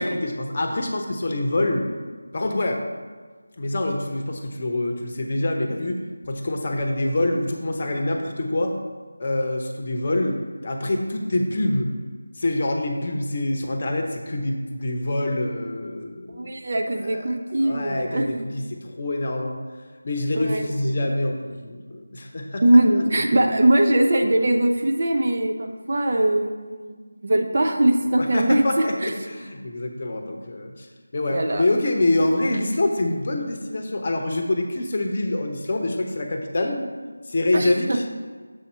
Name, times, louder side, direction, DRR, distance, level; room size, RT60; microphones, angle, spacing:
voice 1, 0.0-1.9 2.3-2.8 3.6-6.0 6.2-8.7 9.2-11.9 12.4-16.5 16.8-17.3 17.6-19.6 20.0-22.6 28.1-30.9 31.1-36.8 37.3-38.1, left 1 dB, 40° left, 3 dB, 0.8 m, -25 dB
voice 2, 16.4-18.5 20.4-21.1 22.6-29.1 31.3-31.6 37.5-38.0, right 1 dB, 45° right, 3 dB, 0.7 m, -21 dB
7.1 x 4.2 x 5.5 m, 1.5 s
figure-of-eight pair, 165°, 0 cm